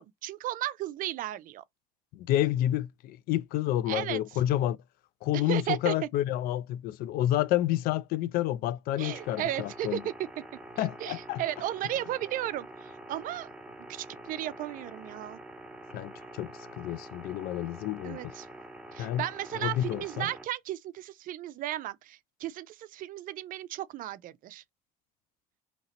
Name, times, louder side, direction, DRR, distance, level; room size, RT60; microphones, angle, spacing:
voice 1, 0.0-1.6 3.9-4.2 5.3-5.9 9.0-10.0 10.8-13.5 13.9-15.4 18.0-18.5 18.9-24.6, right 13 dB, 55° right, 0.4 m, -35 dB
voice 2, 2.1-4.8 5.2-10.0 10.8-11.4 15.9-18.3 19.0-19.3 19.5-20.3, left 13 dB, 65° left, 0.4 m, -29 dB
sound 1, 9.0-20.5, right 1 dB, 5° right, 1.0 m, -46 dB
2.9 x 2.7 x 2.8 m
hypercardioid pair, 70°, 17 cm